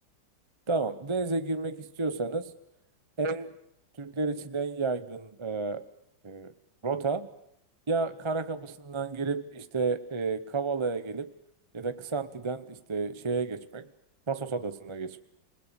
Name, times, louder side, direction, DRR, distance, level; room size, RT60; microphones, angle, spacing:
voice 1, 0.7-2.5 3.2-3.6 4.0-5.9 6.2-6.5 6.8-7.3 7.9-11.3 11.7-13.9 14.3-15.2, right 4 dB, 30° right, 11 dB, 0.5 m, -31 dB
27.5 x 21.0 x 7.0 m, 0.77 s
omnidirectional pair, 2.1 m